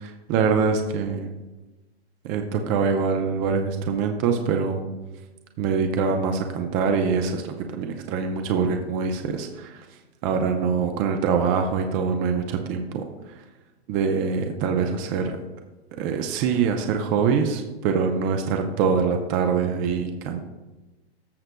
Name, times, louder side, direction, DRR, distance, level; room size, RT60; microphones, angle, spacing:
voice 1, 0.3-1.3 2.2-4.8 5.6-9.9 10.2-13.4 13.9-15.4 16.0-20.4, right 5 dB, 25° right, 5 dB, 0.5 m, -24 dB
14.0 x 6.4 x 2.2 m, 1.1 s
hypercardioid pair, 140°, 33 cm